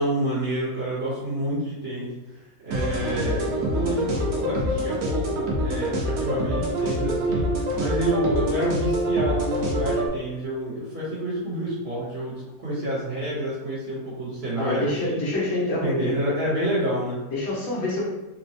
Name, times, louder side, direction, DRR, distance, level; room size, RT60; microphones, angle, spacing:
voice 1, 0.0-15.2 15.8-17.2, equal, 50° right, -9 dB, 1.3 m, -28 dB
sound 1, 2.7-10.1, right 1 dB, 85° right, 1.2 m, -26 dB
voice 2, 14.6-16.2 17.3-18.0, left 2 dB, 90° left, -6 dB, 1.6 m, -26 dB
4.1 x 2.2 x 2.8 m, 1.0 s
omnidirectional pair, 1.5 m